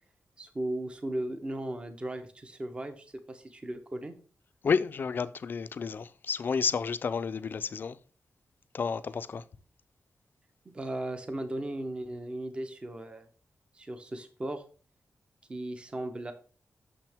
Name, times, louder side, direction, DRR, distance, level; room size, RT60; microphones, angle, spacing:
voice 1, 0.4-4.1 10.7-13.3 13.7-14.6 15.5-16.3, right 1 dB, 20° right, 0.6 m, -36 dB
voice 2, 4.6-8.0 8.7-9.4, left 5 dB, 45° left, 0.3 m, -31 dB
6.3 x 6.0 x 3.4 m
wide cardioid pair, 180°, 5 cm